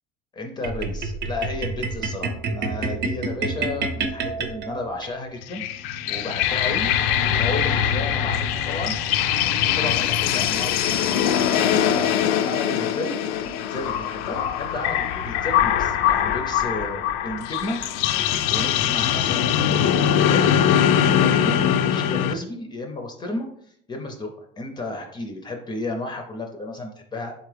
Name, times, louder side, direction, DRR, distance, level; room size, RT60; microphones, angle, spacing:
voice 1, 0.3-5.6 6.1-8.9 9.6-11.3 11.5-17.8 18.5-20.6 21.0-24.3 24.6-27.3, left 2 dB, 20° left, 3 dB, 0.5 m, -33 dB
sound 1, 0.6-5.1, right 3 dB, 60° right, 0.7 m, -28 dB
sound 2, 5.4-22.3, left 9 dB, 80° left, 0.4 m, -22 dB
4.2 x 3.5 x 3.3 m, 0.69 s
cardioid pair, 150°, 21 cm